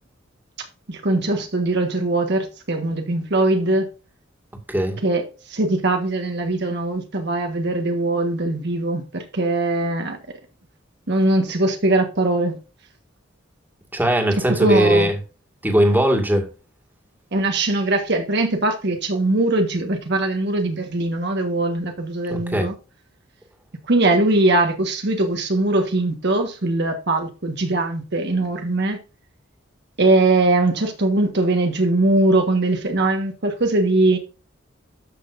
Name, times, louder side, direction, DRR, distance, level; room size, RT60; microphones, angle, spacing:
voice 1, 0.9-3.9 5.0-10.2 11.1-12.5 14.5-15.1 17.3-22.7 23.9-29.0 30.0-34.2, right 2 dB, 60° right, 1.5 m, -21 dB
voice 2, 4.7-5.0 13.9-15.1 15.6-16.5 22.3-22.7, right 1 dB, 10° right, 2.1 m, -19 dB
13.0 x 6.2 x 2.6 m
head